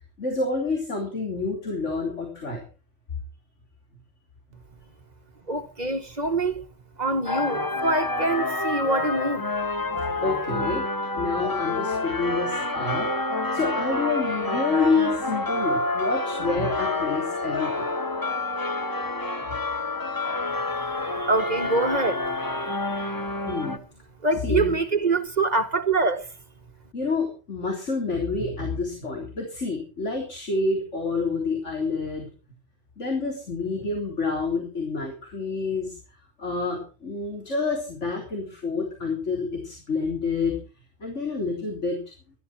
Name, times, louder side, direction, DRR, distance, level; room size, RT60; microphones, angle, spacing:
voice 1, 0.2-2.6 9.9-10.9 11.1-13.1 13.5-17.9 18.8-19.0 23.5-23.8 24.3-24.7 26.9-32.3 33.0-36.0 36.4-40.6 41.0-42.0, left 3 dB, 85° left, 4.0 m, -28 dB
voice 2, 5.5-6.6 7.0-9.5 20.7-23.1 24.2-26.3, right 3 dB, 35° right, 1.5 m, -25 dB
sound 1, 7.3-23.8, left 2 dB, 15° left, 1.5 m, -28 dB
18.0 x 12.5 x 4.6 m
omnidirectional pair, 1.2 m